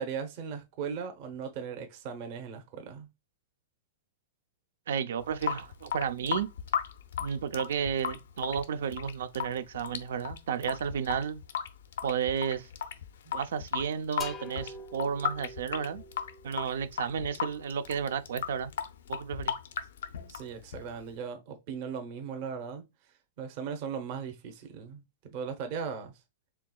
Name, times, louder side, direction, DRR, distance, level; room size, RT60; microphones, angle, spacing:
voice 1, 0.0-3.1 20.3-22.8 23.4-26.1, right 6 dB, 45° right, 0.8 m, -38 dB
voice 2, 4.9-6.5 7.2-11.4 12.0-12.7 13.3-16.0 16.4-18.7 19.1-19.5, right 7 dB, 80° right, 0.5 m, -32 dB
Water tap faucet / Sink (filling or washing) / Drip, 5.2-21.1, left 8 dB, 85° left, 0.6 m, -36 dB
sound 1, 14.2-17.8, left 1 dB, 15° left, 0.5 m, -46 dB
4.6 x 3.4 x 2.3 m
supercardioid pair, 155°, 0 cm